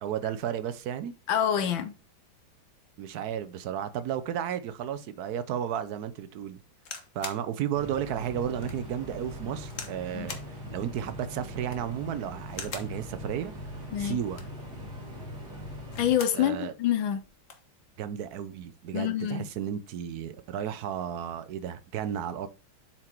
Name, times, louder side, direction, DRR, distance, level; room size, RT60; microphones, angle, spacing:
voice 1, 0.0-1.1 3.0-6.6 7.1-13.5 14.0-14.4 16.3-16.7 18.0-22.5, right 9 dB, 70° right, 0.9 m, -33 dB
voice 2, 1.3-2.0 10.1-10.3 13.9-14.2 16.0-17.2 18.9-19.5, left 10 dB, 75° left, 1.5 m, -26 dB
sound 1, 6.8-7.5 8.0-8.1 8.6-8.8 9.7-10.0 10.3-10.5 11.5-11.9 12.5-13.0 14.2-14.6 15.7-16.4 16.8-16.9 17.2-17.7 18.5-18.8, left 5 dB, 45° left, 1.4 m, -41 dB
sound 2, 7.7-16.2, equal, 50° right, 2.6 m, -41 dB
7.6 x 4.4 x 4.5 m
omnidirectional pair, 2.2 m